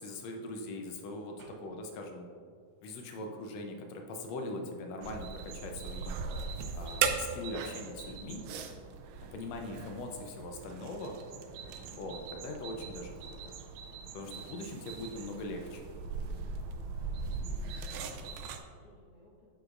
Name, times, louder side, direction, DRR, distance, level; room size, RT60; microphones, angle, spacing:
voice 1, 0.0-2.3 2.8-6.2 6.7-8.4 9.3-11.1 11.9-13.5 14.1-15.8, left 2 dB, 80° left, 3 dB, 1.5 m, -41 dB
sound 1, 1.4-2.0 2.3-3.6 4.2-4.3 4.5-6.7 7.6-7.9, right 1 dB, 65° right, 2.5 m, -59 dB
voice 2, 3.2-3.5 17.5-19.5, left 1 dB, 60° left, -6 dB, 1.8 m, -63 dB
sound 2, 5.0-18.6, right 5 dB, 85° right, 2.2 m, -39 dB
9.0 x 7.5 x 2.5 m, 2.2 s
omnidirectional pair, 3.7 m